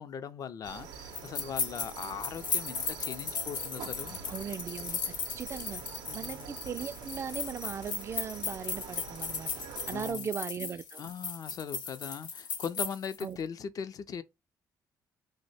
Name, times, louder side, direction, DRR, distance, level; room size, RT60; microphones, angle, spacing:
voice 1, 0.0-4.2 6.1-6.6 9.9-10.3 11.0-14.2, left 7 dB, 55° left, 0.5 m, -40 dB
sound 1, 0.6-10.1, right 7 dB, 90° right, 0.5 m, -46 dB
sound 2, 1.1-13.3, left 5 dB, 75° left, 0.9 m, -37 dB
voice 2, 4.3-5.8 6.1-9.5 9.9-11.1 13.2-13.4, right 7 dB, 40° right, 0.3 m, -38 dB
2.7 x 2.1 x 4.0 m
cardioid pair, 85°, 7 cm